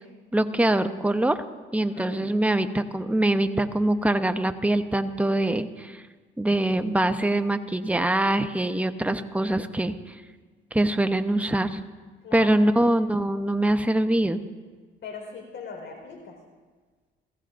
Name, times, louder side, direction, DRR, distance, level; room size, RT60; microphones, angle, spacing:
voice 1, 0.3-1.4 1.7-6.0 6.4-9.9 10.7-11.8 12.3-14.4, right 1 dB, 5° right, 8 dB, 0.8 m, -23 dB
voice 2, 1.8-2.1 12.2-12.7 15.0-16.4, left 5 dB, 65° left, 2 dB, 4.4 m, -40 dB
28.5 x 15.5 x 2.6 m, 1.4 s
cardioid pair, 90°, 20 cm